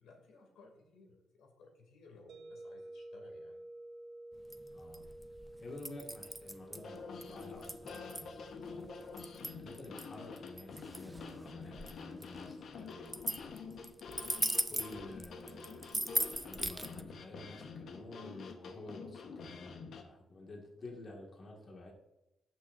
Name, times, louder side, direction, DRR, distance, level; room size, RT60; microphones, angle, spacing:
voice 1, 0.0-3.6 14.9-15.0, left 3 dB, 85° left, 2 dB, 2.4 m, -59 dB
sound 1, 2.3-17.2, right 1 dB, 75° right, 1.5 m, -55 dB
sound 2, 4.4-17.0, right 1 dB, 10° right, 0.5 m, -39 dB
voice 2, 4.7-5.1 5.6-9.2 9.5-13.4 14.7-16.0 16.3-21.9, left 2 dB, 40° left, 0 dB, 1.8 m, -50 dB
sound 3, 6.7-20.0, left 5 dB, 60° left, 1.1 m, -48 dB
17.0 x 6.2 x 2.6 m, 0.96 s
cardioid pair, 120°, 0 cm